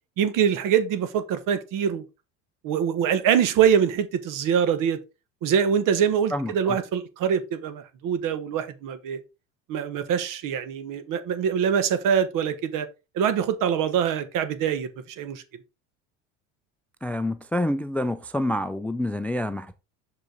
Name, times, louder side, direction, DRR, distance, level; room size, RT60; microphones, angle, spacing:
voice 1, 0.2-2.0 2.6-5.0 5.4-9.2 9.7-12.9 13.1-15.4, right 8 dB, 60° right, 1.1 m, -24 dB
voice 2, 6.3-6.8 17.0-19.7, left 1 dB, 5° left, 0.3 m, -27 dB
6.3 x 5.1 x 3.8 m
supercardioid pair, 95°, 37 cm